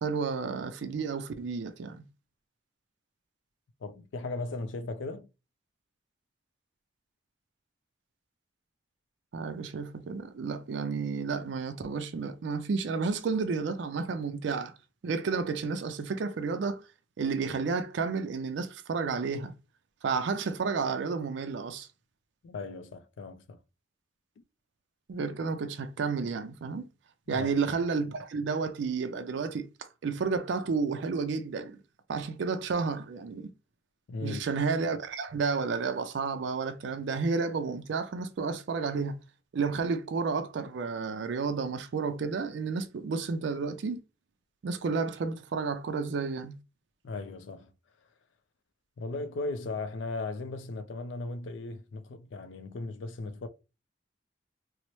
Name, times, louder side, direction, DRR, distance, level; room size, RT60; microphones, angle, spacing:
voice 1, 0.0-2.0 9.3-14.8 15.0-16.9 17.2-19.5 20.0-21.9 25.1-26.9 27.3-31.8 32.1-33.5 34.2-39.2 39.5-44.0 44.6-46.6, right 4 dB, 75° right, 0.4 m, -31 dB
voice 2, 3.8-5.3 22.4-23.6 27.3-27.5 34.1-34.4 47.0-47.7 49.0-53.5, left 3 dB, 85° left, 0.4 m, -37 dB
4.1 x 2.0 x 3.0 m
head